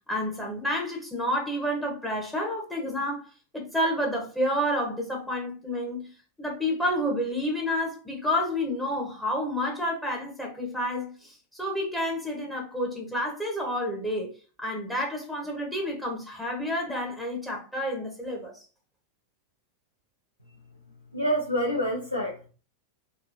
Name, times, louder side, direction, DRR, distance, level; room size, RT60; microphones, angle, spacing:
voice 1, 0.1-3.2 3.5-6.1 6.4-14.3 14.6-18.6, equal, 5° left, 1.0 m, -29 dB
voice 2, 21.1-22.5, equal, 90° left, 0.6 m, -27 dB
3.2 x 2.6 x 2.7 m
figure-of-eight pair, 90°, 0 cm